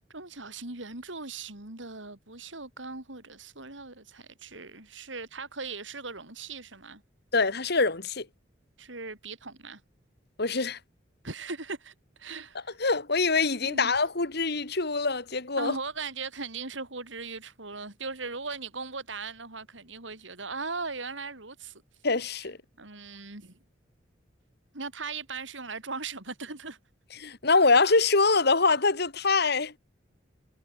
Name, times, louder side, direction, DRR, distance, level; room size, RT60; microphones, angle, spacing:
voice 1, 0.1-7.0 8.8-9.8 11.2-12.7 13.6-13.9 15.6-21.8 22.8-23.6 24.7-26.8, right 4 dB, 75° right, 5.1 m, -39 dB
voice 2, 7.3-8.3 10.4-10.8 12.8-15.8 22.0-22.6 27.2-29.8, left 3 dB, 60° left, 2.5 m, -24 dB
head